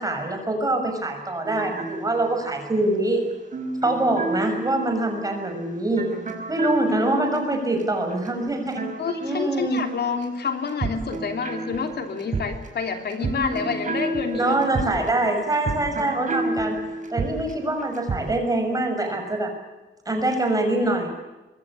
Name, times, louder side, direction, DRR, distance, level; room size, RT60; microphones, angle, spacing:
voice 1, 0.0-3.3 3.8-6.2 6.5-8.9 9.2-9.8 14.3-16.8 17.1-19.5 20.1-21.1, right 2 dB, 20° right, 4 dB, 6.1 m, -24 dB
sound 1, 1.4-10.2 10.5-18.4, right 2 dB, 40° right, 5.1 m, -31 dB
voice 2, 9.0-14.6, left 5 dB, 60° left, 5 dB, 3.1 m, -28 dB
25.0 x 22.5 x 8.5 m, 1.1 s
wide cardioid pair, 170°, 19 cm